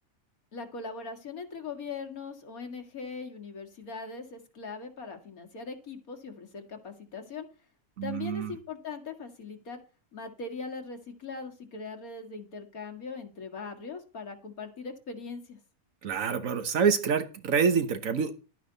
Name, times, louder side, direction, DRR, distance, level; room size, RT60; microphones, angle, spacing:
voice 1, 0.5-7.5 8.0-9.8 10.1-15.6, left 4 dB, 85° left, 5 dB, 2.3 m, -40 dB
voice 2, 8.0-8.5 16.0-18.3, right 6 dB, 70° right, 10 dB, 1.6 m, -26 dB
12.0 x 9.5 x 4.0 m, 0.34 s
omnidirectional pair, 1.5 m